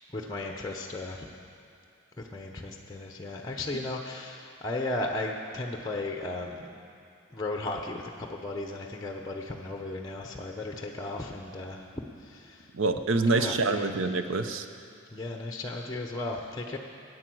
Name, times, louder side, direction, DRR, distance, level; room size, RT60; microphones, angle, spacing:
voice 1, 0.1-1.3 2.2-6.7 7.3-11.9 12.2-12.7 13.3-14.0 15.1-16.8, left 2 dB, 20° left, 2 dB, 0.8 m, -35 dB
voice 2, 12.7-14.7, right 3 dB, 65° right, 8 dB, 0.8 m, -26 dB
14.5 x 9.4 x 7.7 m, 2.4 s
head